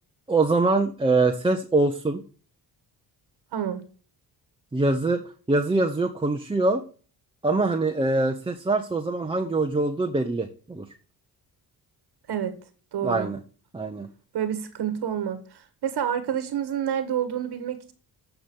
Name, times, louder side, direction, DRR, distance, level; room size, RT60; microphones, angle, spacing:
voice 1, 0.3-2.2 4.7-5.2 5.5-6.8 7.4-10.9 13.0-13.4 13.7-14.1, right 2 dB, 10° right, 0.9 m, -23 dB
voice 2, 3.5-3.8 12.3-12.6 12.9-13.3 14.3-17.9, right 9 dB, 65° right, 1.5 m, -28 dB
8.5 x 6.0 x 7.1 m
cardioid pair, 100°, 43 cm